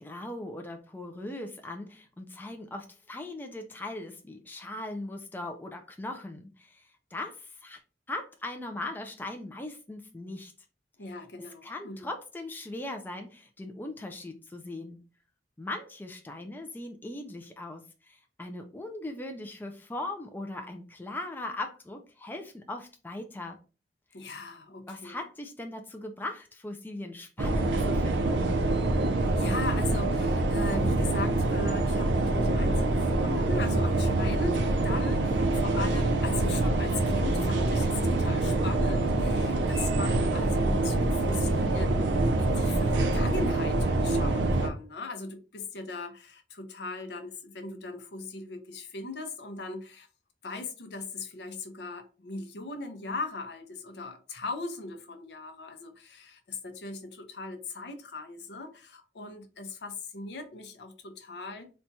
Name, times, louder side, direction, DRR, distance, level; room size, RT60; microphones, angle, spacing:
voice 1, 0.0-7.8 8.1-10.5 11.4-15.0 15.6-23.6 24.9-28.6, left 2 dB, 10° left, 0.3 m, -39 dB
voice 2, 11.0-12.1 24.1-25.2 29.2-50.1 50.4-61.7, left 3 dB, 70° left, 0.7 m, -39 dB
sound 1, 27.4-44.7, right 2 dB, 90° right, 0.5 m, -25 dB
4.2 x 2.2 x 2.7 m
head